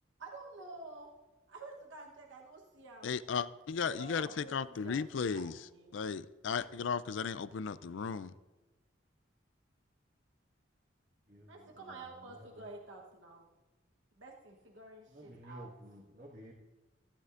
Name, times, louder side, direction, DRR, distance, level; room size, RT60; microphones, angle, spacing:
voice 1, 0.2-1.1 1.5-3.1 3.9-5.4 5.7-6.0 11.4-13.5 14.2-15.7, right 3 dB, 80° right, 1.2 m, -50 dB
voice 2, 3.0-5.6 5.9-8.3, left 6 dB, 75° left, 0.4 m, -35 dB
voice 3, 11.3-12.7 15.1-16.5, equal, 45° right, 1.8 m, -53 dB
15.0 x 11.5 x 2.6 m
head